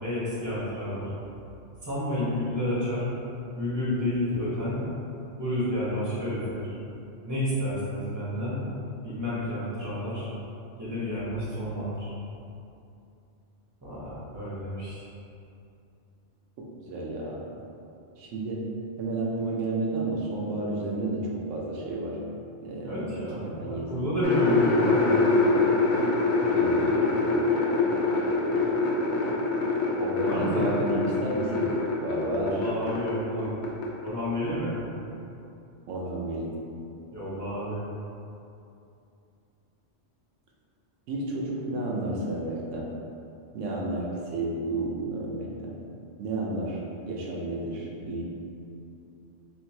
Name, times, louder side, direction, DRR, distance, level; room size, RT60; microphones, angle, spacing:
voice 1, 0.0-1.1 1.8-3.1 3.5-4.8 5.4-6.7 7.2-8.6 9.0-10.3 10.8-12.1 13.8-15.0 22.8-25.3 30.2-30.8 32.3-33.5 34.0-34.7 37.1-37.8, left 1 dB, 20° right, -9 dB, 0.6 m, -30 dB
voice 2, 16.6-17.5 18.2-18.7 19.0-22.2 22.6-24.0 26.5-27.0 30.0-31.7 32.0-32.7 35.9-36.5 41.1-42.9 43.5-45.8 46.2-48.2, right 2 dB, 85° right, -3 dB, 1.0 m, -31 dB
sound 1, 24.2-33.1 33.4-34.1, left 3 dB, 70° left, 0.9 m, -24 dB
3.7 x 2.6 x 2.7 m, 2.7 s
omnidirectional pair, 1.2 m